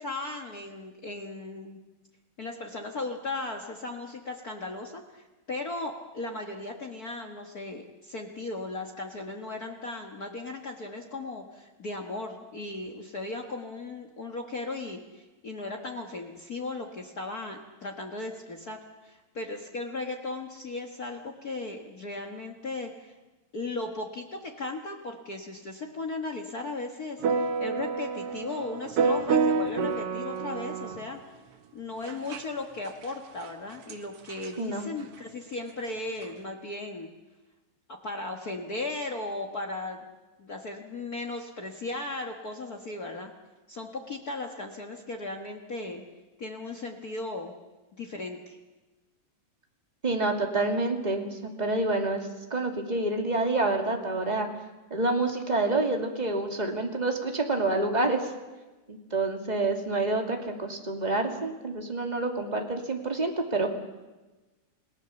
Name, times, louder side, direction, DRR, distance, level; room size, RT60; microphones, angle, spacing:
voice 1, 0.0-1.8 2.4-23.1 23.5-31.2 31.7-37.1 38.0-40.1 40.4-43.3 43.7-46.0 46.4-47.5 48.0-48.6, left 2 dB, 75° left, 2 dB, 0.8 m, -36 dB
sound 1, 27.2-31.0 32.1-32.4 33.1-33.2 33.4-33.5 33.9-34.0 34.3-34.5 36.2-36.3, right 5 dB, 60° right, 1.5 m, -28 dB
voice 2, 50.0-54.5 54.9-58.2 58.9-63.7, right 2 dB, 15° right, 3 dB, 1.5 m, -28 dB
29.5 x 18.5 x 7.1 m, 1.2 s
omnidirectional pair, 4.3 m